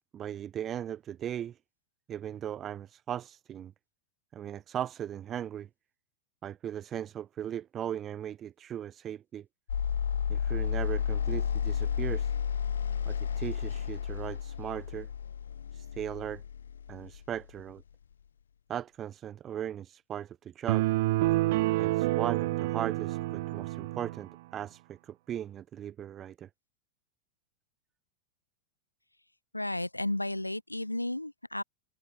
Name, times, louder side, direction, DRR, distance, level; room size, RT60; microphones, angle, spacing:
voice 1, 0.1-1.6 2.1-3.7 4.3-5.7 6.4-9.4 10.3-12.3 13.0-15.1 15.7-16.4 16.9-17.8 18.7-20.9 21.8-26.5, right 10 dB, 25° right, 3.3 m, -38 dB
sound 1, 9.7-17.8, left 8 dB, 70° left, 7.7 m, -32 dB
sound 2, 20.7-24.2, right 19 dB, 50° right, 2.4 m, -28 dB
voice 2, 29.5-31.6, left 1 dB, 85° left, 4.8 m, -33 dB
figure-of-eight pair, 90°, 0 cm